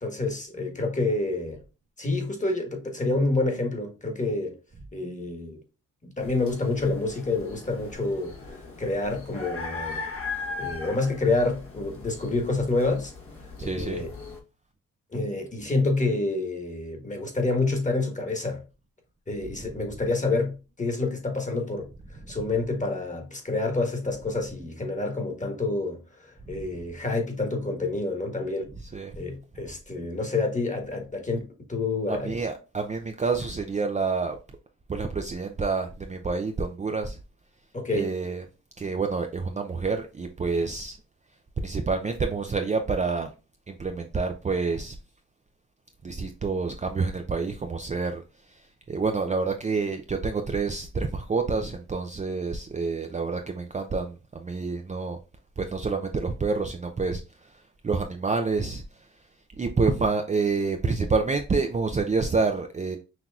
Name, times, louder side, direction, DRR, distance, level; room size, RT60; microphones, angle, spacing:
voice 1, 0.0-1.6 2.0-4.6 4.9-5.6 6.0-10.0 10.6-13.1 13.4-14.1 15.1-18.6 19.3-21.9 22.3-26.0 26.5-28.7 29.2-32.3 37.7-38.1, left 3 dB, 25° left, 1.5 m, -28 dB
sound 1, 6.2-14.4, left 4 dB, 40° left, 1.2 m, -39 dB
voice 2, 13.6-14.0 19.6-19.7 26.5-26.6 28.8-29.1 32.1-34.4 34.9-37.2 37.9-38.4 38.8-41.0 41.6-43.3 43.7-45.0 46.0-48.2 48.5-55.2 55.6-59.1 59.6-63.0, right 4 dB, 25° right, 0.5 m, -28 dB
6.0 x 2.8 x 2.4 m
cardioid pair, 70°, 32 cm